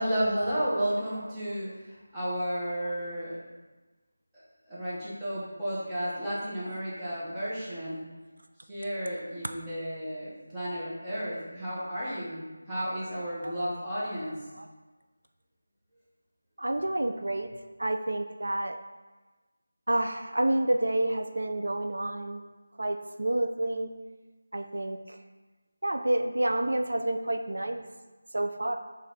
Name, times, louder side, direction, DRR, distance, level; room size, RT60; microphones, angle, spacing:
voice 1, 0.0-3.4 4.7-8.0 8.7-14.3, equal, 5° right, -12 dB, 0.7 m, -32 dB
voice 2, 16.6-17.5 17.8-18.8 19.9-22.4 22.8-23.9 24.5-25.2 25.8-27.8 28.3-28.8, right 1 dB, 80° right, 6 dB, 0.3 m, -29 dB
4.0 x 3.2 x 3.6 m, 1.2 s
figure-of-eight pair, 175°, 0 cm